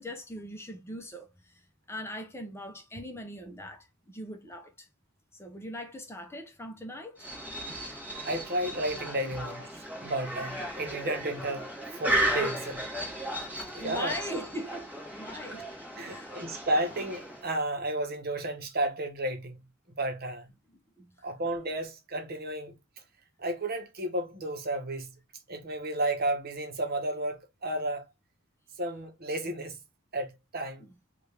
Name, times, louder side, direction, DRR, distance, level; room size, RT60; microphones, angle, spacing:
voice 1, 0.0-1.5 1.9-4.9 5.3-7.3 13.8-15.6 16.0-16.4 21.0-21.3 30.8-30.9, equal, 10° left, 0.7 m, -41 dB
sound 1, 7.2-17.6, right 1 dB, 10° right, 1.5 m, -35 dB
voice 2, 8.2-9.7 10.0-11.7 11.9-12.8 13.7-14.2 16.0-19.6 19.9-20.5 21.2-22.7 23.4-25.1 25.5-28.1 28.8-29.8 30.1-30.8, right 1 dB, 45° right, 1.0 m, -32 dB
5.1 x 2.5 x 3.3 m
head